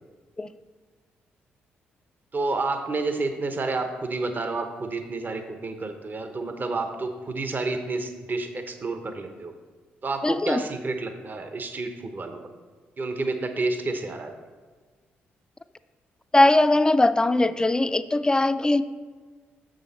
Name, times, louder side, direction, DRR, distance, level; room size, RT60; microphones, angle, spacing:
voice 1, 2.3-9.5 10.0-12.4 13.0-14.3, right 3 dB, 40° right, 6 dB, 0.9 m, -30 dB
voice 2, 10.2-10.6 16.3-18.8, left 2 dB, 15° left, 13 dB, 0.4 m, -20 dB
6.8 x 6.4 x 4.1 m, 1.4 s
hypercardioid pair, 50°, 5 cm